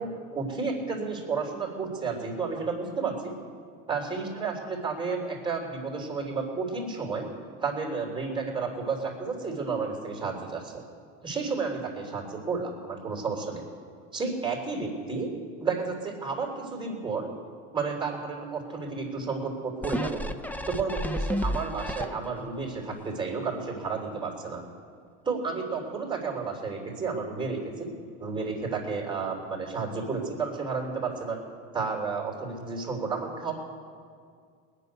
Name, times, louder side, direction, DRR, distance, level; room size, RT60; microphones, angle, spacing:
voice 1, 0.0-3.3 3.9-7.3 7.6-10.8 11.2-13.6 14.1-15.3 15.6-17.3 17.7-20.2 20.7-24.6 25.2-27.9 28.2-31.4 31.7-33.5, right 4 dB, 15° right, 0 dB, 3.4 m, -32 dB
sound 1, 19.8-22.5 23.0-23.1, equal, 5° left, 0.5 m, -31 dB
20.0 x 6.8 x 9.4 m, 2.2 s
supercardioid pair, 120°, 38 cm